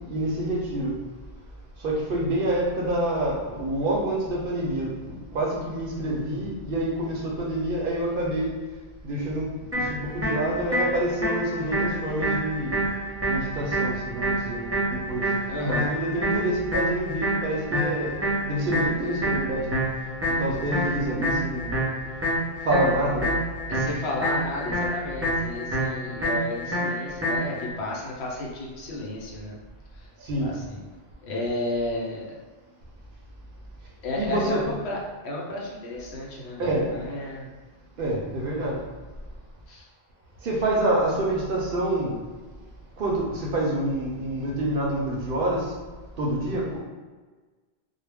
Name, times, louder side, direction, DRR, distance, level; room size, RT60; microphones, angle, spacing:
voice 1, 0.1-0.9 1.8-8.6 9.0-12.8 13.3-15.3 15.7-19.8 20.3-21.7 22.6-23.3 30.2-30.5 34.2-34.8 36.6-36.9 38.0-38.8 40.4-42.2 43.0-45.7 46.2-46.8, right 1 dB, 60° right, -3 dB, 0.7 m, -27 dB
sound 1, 9.7-27.7, right 1 dB, 15° right, 0.5 m, -28 dB
voice 2, 15.5-15.9 23.7-29.6 30.0-30.1 30.4-30.8 31.2-32.4 34.0-37.5 38.6-38.7 39.7-39.9, left 1 dB, 75° left, -3 dB, 0.9 m, -32 dB
2.4 x 2.0 x 3.3 m, 1.3 s
omnidirectional pair, 1.1 m